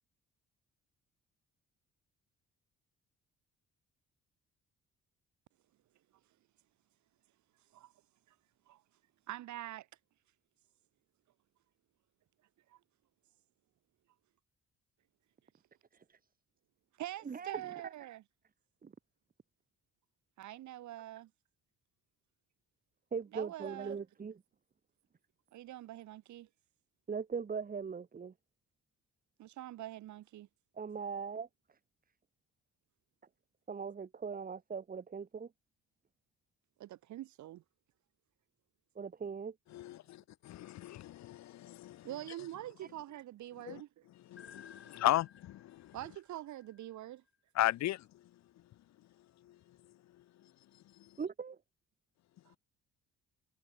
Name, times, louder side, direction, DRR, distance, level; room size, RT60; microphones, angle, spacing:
voice 1, 9.3-9.9 12.7-12.8 17.0-18.2 20.4-21.3 23.3-24.0 25.5-26.5 29.4-30.5 36.8-37.6 42.0-44.1 45.9-47.2 52.5-52.6, right 14 dB, 70° right, 0.9 m, -45 dB
voice 2, 23.1-24.4 27.1-28.3 30.8-31.5 33.7-35.5 39.0-39.5 51.2-51.5, right 6 dB, 30° right, 1.0 m, -40 dB
voice 3, 39.7-42.1 43.6-43.8 44.3-46.0 47.5-48.3 49.4-49.8 50.2-50.5 50.9-51.0, left 14 dB, 65° left, 0.7 m, -36 dB
sound 1, 44.4-47.3, left 7 dB, 45° left, 2.7 m, -58 dB
cardioid pair, 90°, 30 cm